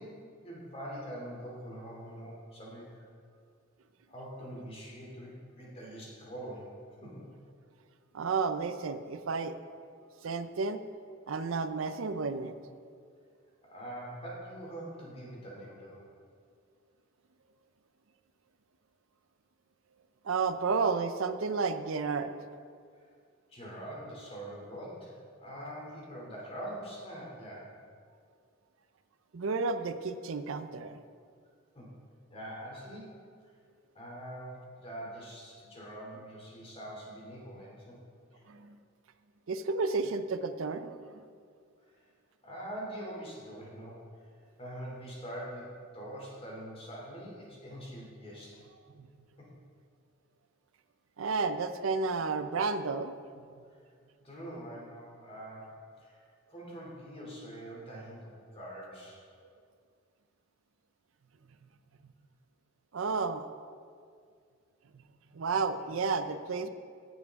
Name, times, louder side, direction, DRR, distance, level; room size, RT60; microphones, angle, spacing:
voice 1, 0.0-3.0 4.1-6.7 7.0-7.2 13.7-16.1 23.5-27.7 31.7-31.9 32.3-33.3 33.9-38.0 38.3-38.4 41.9-42.0 42.4-44.1 44.6-48.6 49.4-49.5 54.2-55.7 56.0-56.2 56.5-59.2, right 1 dB, 30° left, -4 dB, 2.8 m, -44 dB
voice 2, 8.1-9.6 10.2-10.8 11.3-12.5 20.2-22.3 29.3-31.0 38.5-38.8 39.5-41.2 49.0-49.1 51.2-53.1 62.9-63.5 65.3-66.7, right 4 dB, 85° right, 10 dB, 0.5 m, -31 dB
16.0 x 7.3 x 3.6 m, 2.2 s
head